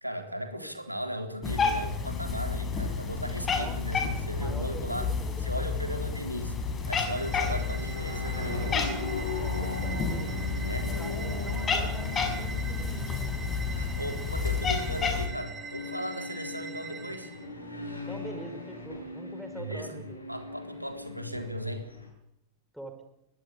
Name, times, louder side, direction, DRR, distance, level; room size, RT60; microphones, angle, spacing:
voice 1, 0.0-5.1 5.4-6.6 6.9-8.5 10.5-10.9 13.8-17.3 19.6-20.0 20.3-21.9, equal, 90° right, 6 dB, 3.7 m, -37 dB
Cat, 1.4-15.3, left 5 dB, 20° left, 5.9 m, -31 dB
voice 2, 3.3-3.8 4.4-5.7 9.4-10.5 10.9-13.5 18.1-20.2 22.7-23.1, right 2 dB, ahead, 4 dB, 6.1 m, -45 dB
sound 1, 3.9-22.1, left 2 dB, 80° left, 7.8 m, -40 dB
sound 2, 6.9-17.5, right 5 dB, 20° right, 4.7 m, -44 dB
24.0 x 19.5 x 8.7 m, 0.81 s
figure-of-eight pair, 90°, 0 cm